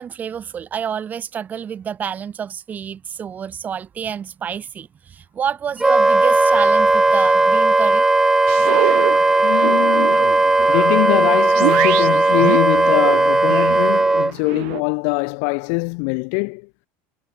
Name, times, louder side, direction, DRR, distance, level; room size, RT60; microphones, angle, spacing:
voice 1, 0.0-8.0, right 8 dB, 25° right, 7.4 m, -28 dB
Wind instrument woodwind instrument, 5.8-14.3, right 2 dB, 5° right, 1.4 m, -16 dB
sound 1, 8.5-14.8, right 25 dB, 80° right, 1.2 m, -27 dB
voice 2, 9.4-10.3 10.7-16.7, left 40 dB or more, 70° left, 5.5 m, -22 dB
cardioid pair, 160°, 7 cm